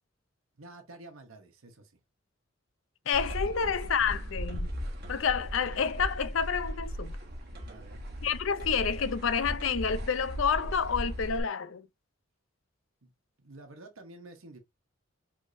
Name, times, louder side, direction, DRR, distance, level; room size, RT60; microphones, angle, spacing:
voice 1, 0.5-1.9 3.2-3.7 7.6-8.1 13.0-13.1 13.4-14.6, right 2 dB, 90° right, 1.2 m, -50 dB
voice 2, 3.1-4.7 5.1-7.2 8.2-11.9, left 6 dB, 75° left, 0.5 m, -29 dB
sound 1, 3.1-11.4, equal, 50° right, 1.3 m, -37 dB
5.0 x 3.5 x 2.6 m
head